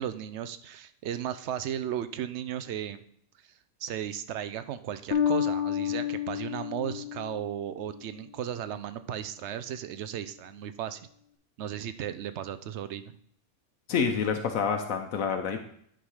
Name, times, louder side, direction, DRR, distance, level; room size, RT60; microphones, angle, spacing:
voice 1, 0.0-3.0 3.8-11.0 11.6-13.1, right 10 dB, 65° right, 12 dB, 0.8 m, -35 dB
Bass guitar, 5.1-8.1, left 9 dB, 55° left, 0.8 m, -30 dB
voice 2, 13.9-15.6, left 6 dB, 80° left, 5 dB, 1.1 m, -28 dB
10.0 x 3.8 x 4.8 m, 0.65 s
omnidirectional pair, 1.4 m